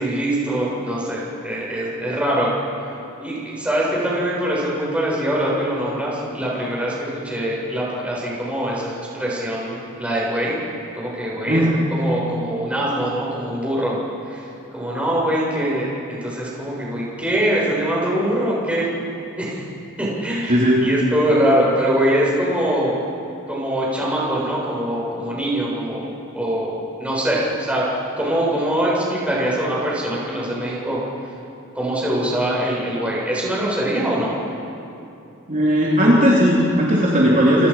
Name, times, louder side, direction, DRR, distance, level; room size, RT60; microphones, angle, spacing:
voice 1, 0.0-2.5 3.2-10.5 10.9-14.0 14.2-14.5 14.7-18.9 19.4-19.6 20.0-22.9 23.5-26.1 26.3-27.9 28.2-31.0 31.7-34.3, right 1 dB, 5° right, -6 dB, 8.0 m, -23 dB
voice 2, 20.5-20.8 35.5-37.7, equal, 35° right, -5 dB, 3.6 m, -16 dB
29.0 x 27.0 x 5.9 m, 2.7 s
head